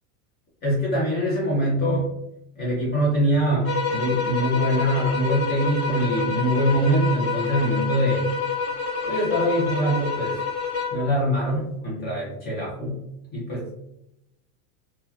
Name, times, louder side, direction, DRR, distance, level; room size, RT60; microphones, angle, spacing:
voice 1, 0.6-2.1 2.6-8.3 9.0-10.4 10.9-13.0 13.3-13.6, equal, 20° left, -5 dB, 0.6 m, -23 dB
sound 1, 3.6-11.1, left 5 dB, 70° left, 1.0 m, -28 dB
2.9 x 2.2 x 2.3 m, 0.85 s
supercardioid pair, 150°, 47 cm